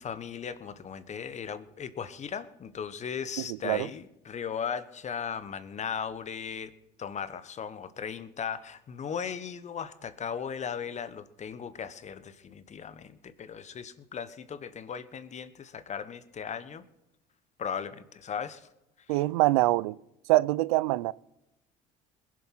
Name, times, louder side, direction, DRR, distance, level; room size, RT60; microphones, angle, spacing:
voice 1, 0.0-6.7 7.0-16.8 17.6-18.7 19.1-19.2, left 7 dB, 40° left, 1.2 m, -37 dB
voice 2, 3.5-3.9 19.1-20.0 20.3-21.1, right 19 dB, 85° right, 0.4 m, -24 dB
21.0 x 7.7 x 5.9 m
hypercardioid pair, 70°, 18 cm